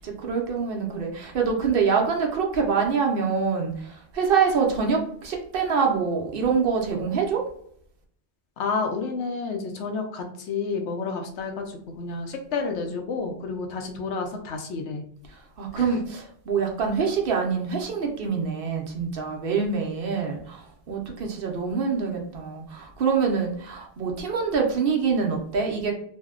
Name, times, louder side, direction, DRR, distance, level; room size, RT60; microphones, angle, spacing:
voice 1, 0.0-7.4 15.6-25.9, right 5 dB, 60° right, 1 dB, 0.8 m, -25 dB
voice 2, 8.6-15.1 15.7-15.9, left 4 dB, 85° left, 4 dB, 0.9 m, -30 dB
2.6 x 2.1 x 3.5 m, 0.65 s
omnidirectional pair, 1.1 m